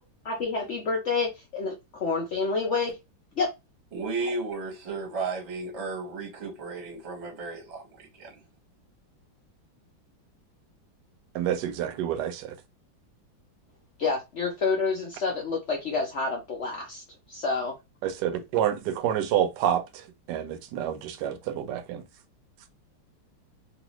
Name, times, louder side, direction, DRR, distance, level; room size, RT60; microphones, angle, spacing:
voice 1, 0.2-3.0 3.4-3.5 14.0-17.0 17.3-17.7, left 4 dB, 80° left, 0.6 m, -28 dB
voice 2, 3.9-8.3, right 3 dB, 50° right, 0.9 m, -34 dB
voice 3, 11.3-12.5 18.0-19.8 20.3-22.0, right 10 dB, 75° right, 1.1 m, -28 dB
3.1 x 2.6 x 3.0 m
omnidirectional pair, 2.1 m